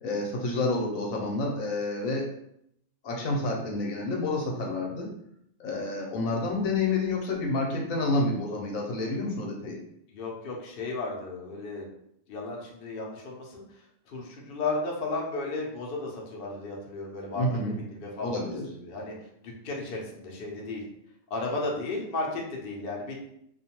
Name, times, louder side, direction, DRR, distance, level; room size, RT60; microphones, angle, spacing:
voice 1, 0.0-2.3 3.0-5.2 5.6-9.8 17.4-17.8 18.2-18.6, left 2 dB, 80° left, -1 dB, 1.1 m, -29 dB
voice 2, 10.1-11.9 12.3-18.5 18.8-19.2 19.4-20.8 21.3-23.1, left 3 dB, 55° left, -2 dB, 0.7 m, -34 dB
2.5 x 2.2 x 2.8 m, 0.74 s
omnidirectional pair, 1.4 m